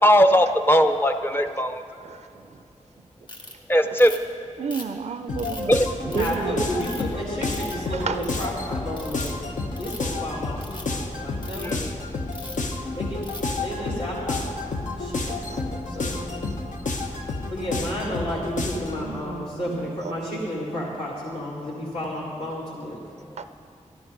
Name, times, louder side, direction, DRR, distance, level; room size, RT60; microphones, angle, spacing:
voice 1, 0.0-1.8 3.7-4.1 5.7-5.9 11.6-11.9 23.3-23.4, equal, 15° left, 7 dB, 0.6 m, -19 dB
Ratchet pawl, 3.3-3.5 4.0-4.3 4.7-5.6 6.1-6.4 6.8-7.1 7.5-7.9 8.2-8.5 9.0-9.3 9.7-10.1 10.6-10.8 11.4-11.7 12.3-12.6 13.2-13.5, left 2 dB, 35° left, 1.7 m, -39 dB
voice 2, 4.6-5.7 6.2-6.5 8.1-8.2 19.1-19.5 23.4-23.5, right 6 dB, 60° right, 10 dB, 0.4 m, -30 dB
sound 1, 5.3-19.0, left 3 dB, 80° left, 1.1 m, -30 dB
voice 3, 6.1-9.3 9.8-11.9 12.9-13.2 13.6-14.4 15.0-16.6 17.5-23.0, equal, 55° left, -7 dB, 2.1 m, -32 dB
13.5 x 12.5 x 5.1 m, 2.6 s
wide cardioid pair, 135°, 13 cm